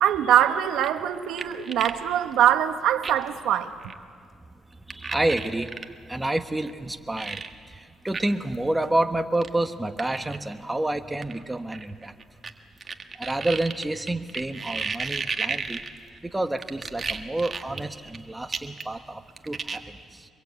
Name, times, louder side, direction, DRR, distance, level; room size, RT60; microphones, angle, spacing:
voice 1, 0.0-3.7, right 10 dB, 85° right, 8 dB, 1.3 m, -22 dB
sound 1, 0.7-2.0 2.3-2.4 3.0-3.3 3.8-4.0 4.9-5.8 6.7-6.8 7.2-7.5 8.1-8.2 8.5-8.6 9.4-9.5 10.0-10.4 11.2-12.5 12.8-16.2 16.6-18.2 18.5-19.0 19.3-19.8, right 4 dB, 35° right, 1.6 m, -33 dB
voice 2, 4.9-5.7 6.1-7.4 7.7-12.1 13.2-15.8 16.2-19.8, right 1 dB, 10° right, 7 dB, 1.3 m, -28 dB
24.5 x 22.5 x 8.3 m, 2.1 s
cardioid pair, 90°, 0 cm